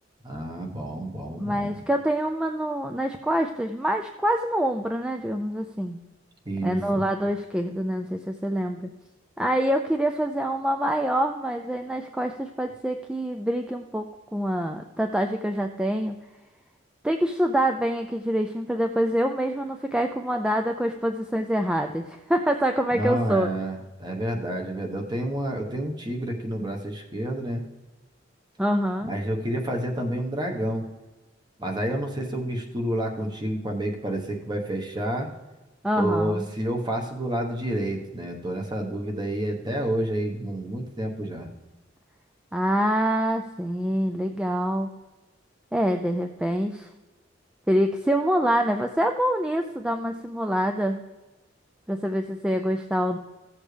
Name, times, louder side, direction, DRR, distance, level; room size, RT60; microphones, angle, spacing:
voice 1, 0.2-1.8 6.4-7.0 22.9-27.6 29.0-30.8 31.6-35.3 36.0-41.5, right 1 dB, 25° right, 2 dB, 1.1 m, -29 dB
voice 2, 1.4-6.0 6.6-8.9 9.4-16.2 17.0-23.5 28.6-29.1 35.8-36.4 42.5-44.9 45.7-46.9 47.7-51.0 51.9-53.2, equal, 5° right, 5 dB, 0.4 m, -25 dB
15.5 x 7.2 x 3.3 m, 1.1 s
head